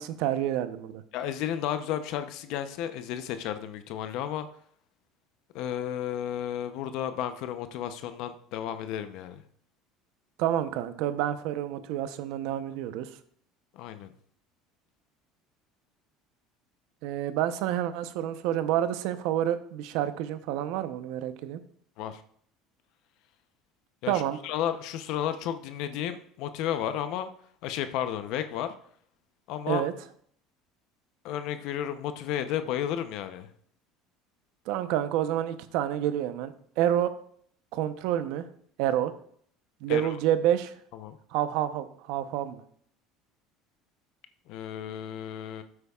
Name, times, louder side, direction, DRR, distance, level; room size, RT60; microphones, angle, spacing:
voice 1, 0.0-1.0 10.4-13.1 17.0-21.6 24.1-24.4 29.7-29.9 34.7-37.1 37.7-38.4 38.8-39.1 39.8-40.7 41.3-42.6, right 11 dB, 75° right, 11 dB, 0.8 m, -28 dB
voice 2, 1.1-4.5 5.5-9.4 13.7-14.1 22.0-22.2 24.0-27.3 27.6-28.7 29.5-29.8 31.2-33.5 39.9-40.1 40.9-41.2 44.5-45.6, left 10 dB, 65° left, 10 dB, 0.7 m, -33 dB
12.5 x 8.1 x 2.4 m, 0.62 s
supercardioid pair, 110°, 0 cm